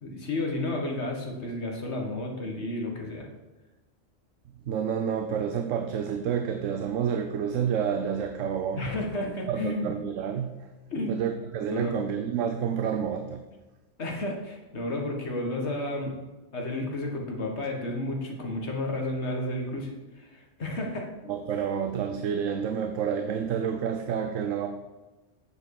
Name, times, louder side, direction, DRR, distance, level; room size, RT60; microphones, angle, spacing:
voice 1, 0.0-3.3 8.8-9.9 10.9-11.2 11.7-12.0 14.0-16.2 16.5-21.1, left 1 dB, 60° left, 1 dB, 1.9 m, -32 dB
voice 2, 4.7-8.8 9.5-10.6 11.1-13.4 21.3-24.7, right 7 dB, 80° right, 7 dB, 1.1 m, -29 dB
9.4 x 7.3 x 4.8 m, 1.2 s
omnidirectional pair, 1.3 m